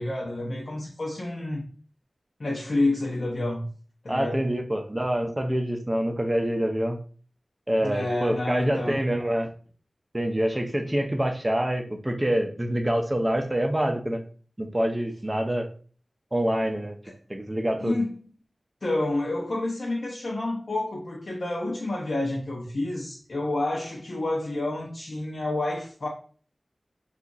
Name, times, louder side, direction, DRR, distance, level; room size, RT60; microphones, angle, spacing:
voice 1, 0.0-1.7 2.4-3.6 4.0-4.4 7.8-9.0 17.0-17.1 17.8-18.1 18.8-26.1, left 2 dB, 65° left, 0.6 m, -29 dB
voice 2, 4.1-7.0 7.7-9.5 10.1-14.2 14.6-15.7 16.3-17.0 17.3-18.0, right 1 dB, 20° right, 0.6 m, -26 dB
2.8 x 2.4 x 3.8 m
wide cardioid pair, 70°, 0 cm